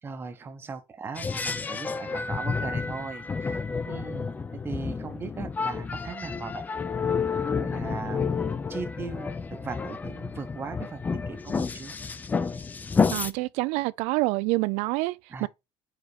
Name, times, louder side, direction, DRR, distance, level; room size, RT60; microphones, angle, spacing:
voice 1, 0.0-6.7 7.5-8.2 8.7-11.9 15.3-15.5, right 5 dB, 20° right, 0.8 m, -39 dB
sound 1, 1.2-13.3, left 5 dB, 15° left, 0.4 m, -30 dB
voice 2, 13.1-15.2 15.4-15.5, right 21 dB, 75° right, 0.4 m, -26 dB
4.9 x 4.4 x 4.7 m
cardioid pair, 165°, 12 cm